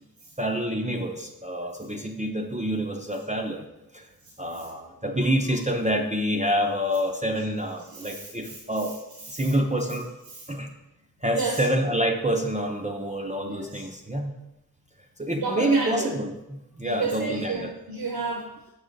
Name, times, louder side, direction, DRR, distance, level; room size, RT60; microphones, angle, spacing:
voice 1, 0.4-3.7 3.9-4.1 4.4-9.0 9.3-10.1 10.5-10.7 11.2-14.3 15.2-17.7, right 1 dB, 20° right, 2 dB, 0.6 m, -27 dB
voice 2, 7.9-8.6 9.3-9.5 10.3-10.5 11.3-11.6 13.4-13.8 15.4-16.1 16.8-18.7, right 3 dB, 70° right, 0 dB, 1.1 m, -32 dB
6.4 x 6.0 x 3.9 m, 0.93 s
wide cardioid pair, 100°, 37 cm